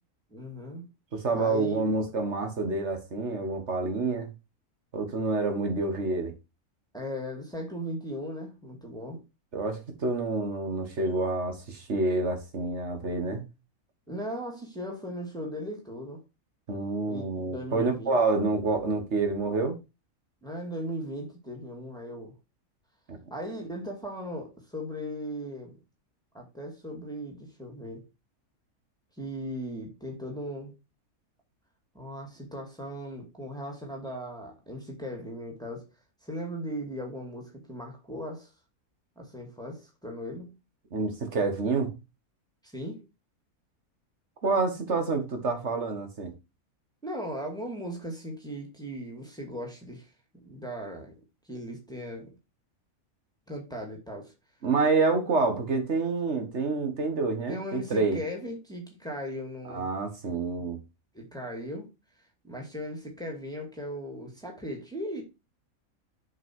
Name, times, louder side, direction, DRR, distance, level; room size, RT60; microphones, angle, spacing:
voice 1, 0.3-0.9 1.3-1.9 6.9-9.2 14.1-16.2 17.1-18.2 20.4-22.4 23.3-25.8 26.3-28.1 29.2-30.7 31.9-35.9 36.2-38.5 39.2-40.5 42.6-43.0 47.0-50.1 50.4-51.2 51.5-52.3 53.5-54.3 57.5-59.9 61.1-61.9 62.4-65.2, equal, 5° left, 2.3 m, -38 dB
voice 2, 1.1-4.3 4.9-6.3 9.5-13.4 16.7-19.8 23.1-23.2 40.9-41.9 44.4-46.3 54.6-58.2 59.7-60.8, right 3 dB, 50° right, 1.9 m, -28 dB
7.5 x 5.4 x 4.6 m
omnidirectional pair, 1.5 m